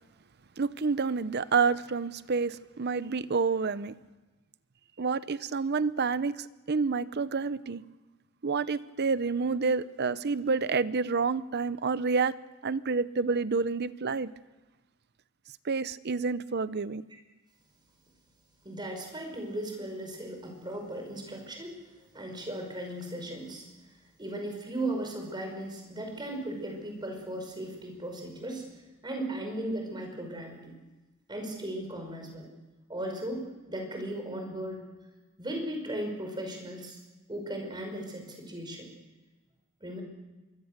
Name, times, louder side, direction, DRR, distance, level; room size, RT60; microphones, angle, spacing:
voice 1, 0.6-3.9 5.0-7.8 8.4-12.3 12.6-14.3 15.6-17.0, right 4 dB, 50° right, 16 dB, 0.7 m, -28 dB
voice 2, 18.7-21.8 22.1-23.7 24.2-28.7 29.0-30.7 31.3-32.5 32.9-34.8 35.4-37.0 37.3-38.9 39.8-40.0, right 1 dB, 20° right, 2 dB, 5.4 m, -37 dB
25.5 x 23.0 x 6.6 m, 1.2 s
head